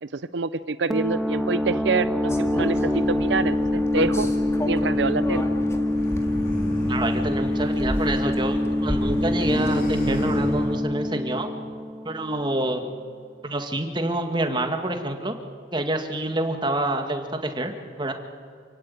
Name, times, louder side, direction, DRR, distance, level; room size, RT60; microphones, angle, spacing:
voice 1, 0.0-4.3 4.6-5.4, right 4 dB, 70° right, 13 dB, 0.6 m, -26 dB
sound 1, 0.9-12.4, left 1 dB, ahead, 1.5 m, -25 dB
sound 2, 2.3-10.8, equal, 15° left, 2.0 m, -34 dB
sound 3, 5.8-8.2 8.5-11.0, right 1 dB, 50° left, 4.8 m, -34 dB
voice 2, 6.9-11.5 12.1-12.8 13.4-15.4 15.7-17.7 18.0-18.1, right 1 dB, 25° right, 6 dB, 2.1 m, -27 dB
28.0 x 17.0 x 9.3 m, 2.3 s
head